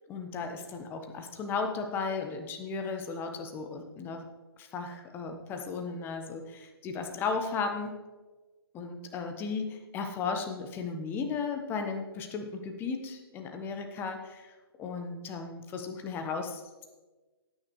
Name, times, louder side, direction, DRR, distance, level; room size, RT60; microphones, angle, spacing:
voice 1, 0.1-4.2 4.6-8.0 8.7-16.8, left 4 dB, 15° left, 5 dB, 1.1 m, -35 dB
17.0 x 9.4 x 3.2 m, 1.3 s
figure-of-eight pair, 130°, 14 cm